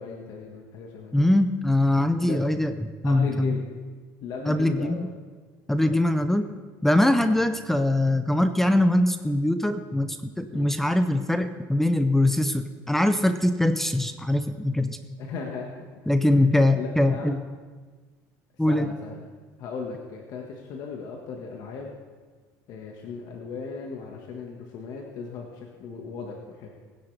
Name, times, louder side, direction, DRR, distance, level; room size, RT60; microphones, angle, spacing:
voice 1, 0.0-1.1 2.2-2.4 3.0-3.7 4.2-5.1 5.8-6.0 7.2-7.3 10.5-10.7 15.2-15.9 16.3-17.4 18.7-19.2 19.6-21.9 22.7-26.7, left 5 dB, 55° left, 0 dB, 1.6 m, -37 dB
voice 2, 1.1-3.6 4.5-5.1 5.7-6.5 6.8-15.0 16.1-17.4 18.6-18.9, left 1 dB, 5° left, 9 dB, 0.5 m, -22 dB
20.5 x 10.0 x 3.4 m, 1.4 s
cardioid pair, 135°, 8 cm